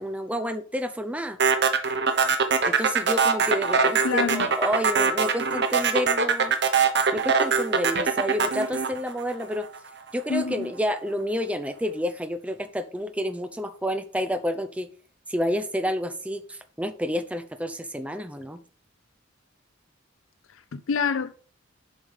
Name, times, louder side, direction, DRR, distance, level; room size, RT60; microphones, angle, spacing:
voice 1, 0.0-1.4 2.7-6.5 7.1-9.7 10.1-14.9 15.3-18.6, equal, 5° right, 0.6 m, -29 dB
sound 1, 1.4-9.8, right 5 dB, 55° right, 1.1 m, -22 dB
voice 2, 4.0-4.5 10.3-10.7 20.7-21.3, left 5 dB, 80° left, 0.5 m, -26 dB
7.2 x 5.0 x 5.3 m
head